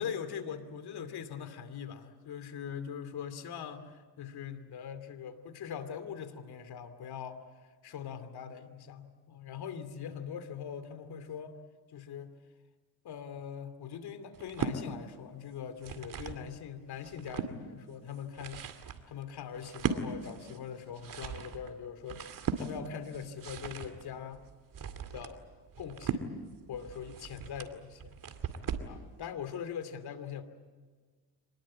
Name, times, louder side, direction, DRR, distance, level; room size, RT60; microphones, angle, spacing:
voice 1, 0.0-7.4 7.8-11.6 11.9-12.3 13.0-18.6 19.1-22.3 22.5-24.4 25.1-25.4 25.8-26.3 26.7-28.2 28.8-30.4, left 7 dB, 65° left, 10 dB, 2.7 m, -42 dB
sound 1, 14.3-14.8 15.6-16.4 16.9-17.5 18.1-29.0, right 6 dB, 50° right, 2.3 m, -38 dB
25.5 x 20.5 x 8.6 m, 1.4 s
cardioid pair, 95°, 42 cm